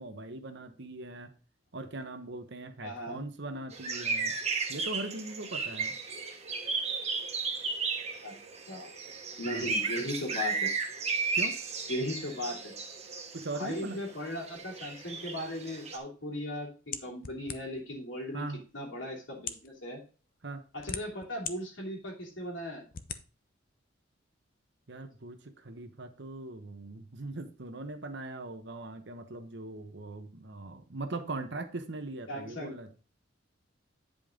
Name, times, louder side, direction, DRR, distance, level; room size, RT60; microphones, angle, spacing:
voice 1, 0.0-1.3 1.7-4.4 4.7-6.0 9.5-9.7 11.3-11.6 13.3-14.0 18.3-18.6 20.4-20.6 24.9-32.9, right 2 dB, 65° right, 1.1 m, -40 dB
voice 2, 2.8-3.2 8.2-8.3 8.7-8.9 9.4-10.7 11.9-12.8 13.5-18.4 18.7-20.0 20.7-22.8 32.3-32.7, left 1 dB, 80° left, 3.0 m, -37 dB
sound 1, 3.7-16.0, right 4 dB, 35° right, 1.4 m, -34 dB
sound 2, 16.9-17.9 18.7-18.8 19.4-19.7 20.5-21.6 22.1-22.2 22.9-23.2, left 7 dB, 50° left, 0.7 m, -39 dB
9.4 x 5.3 x 3.8 m
head